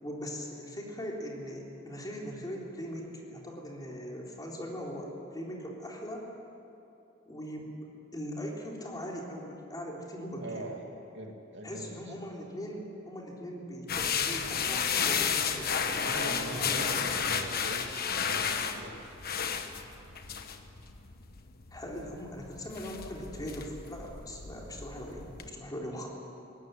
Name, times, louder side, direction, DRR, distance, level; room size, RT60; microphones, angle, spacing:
voice 1, 0.0-6.3 7.2-7.7 8.1-10.7 11.6-17.1 21.7-26.1, equal, 20° left, -2 dB, 3.6 m, -40 dB
voice 2, 10.4-10.8 11.1-12.0 16.0-19.0, right 1 dB, 65° right, 2 dB, 2.6 m, -42 dB
sound 1, 13.9-25.5, left 7 dB, 50° left, 1.3 m, -33 dB
22.0 x 18.0 x 9.3 m, 2.8 s
head